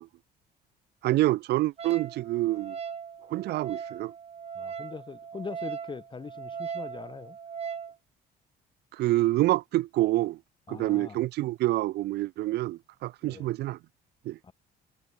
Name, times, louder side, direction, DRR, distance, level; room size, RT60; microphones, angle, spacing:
voice 1, 1.0-2.8 3.3-4.1 8.9-10.4 10.7-13.8 14.3-14.4, right 16 dB, 80° right, 1.9 m, -27 dB
Wind instrument woodwind instrument, 1.8-7.9, right 7 dB, 35° right, 2.1 m, -39 dB
voice 2, 4.5-7.4 10.7-11.2 13.2-13.5 14.4-14.5, left 5 dB, 30° left, 5.6 m, -41 dB
cardioid pair, 110°, 17 cm